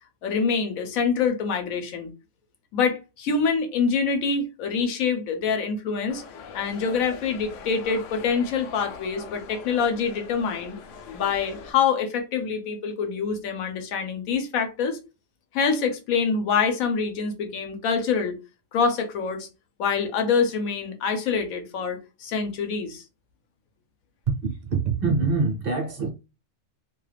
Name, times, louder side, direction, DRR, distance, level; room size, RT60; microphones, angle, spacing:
voice 1, 0.2-2.1 2.7-6.2 6.5-10.8 11.1-15.0 15.5-18.4 18.7-19.5 19.8-23.0, left 5 dB, 90° left, 1.2 m, -25 dB
sound 1, 6.1-11.7, left 6 dB, 70° left, 0.9 m, -42 dB
voice 2, 24.3-26.1, right 4 dB, 50° right, 0.8 m, -25 dB
2.8 x 2.3 x 3.2 m
omnidirectional pair, 1.4 m